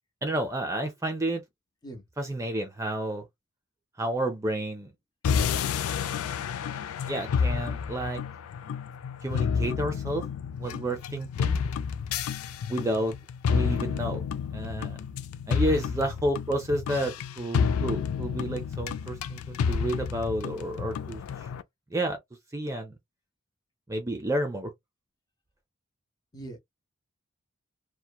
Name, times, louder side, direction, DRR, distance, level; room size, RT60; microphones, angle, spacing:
voice 1, 0.2-1.4 2.2-3.2 4.0-4.9 7.1-8.2 9.2-10.2 10.6-11.6 12.7-13.1 13.5-14.2 14.5-15.0 15.5-21.5 21.9-22.2 22.5-22.9 23.9-24.7, right 1 dB, 15° right, 0.4 m, -30 dB
voice 2, 1.8-2.0 15.6-15.8 26.3-26.6, right 2 dB, 20° left, 0.7 m, -42 dB
sound 1, 5.2-21.6, left 6 dB, 85° left, 0.3 m, -30 dB
2.8 x 2.1 x 2.2 m
head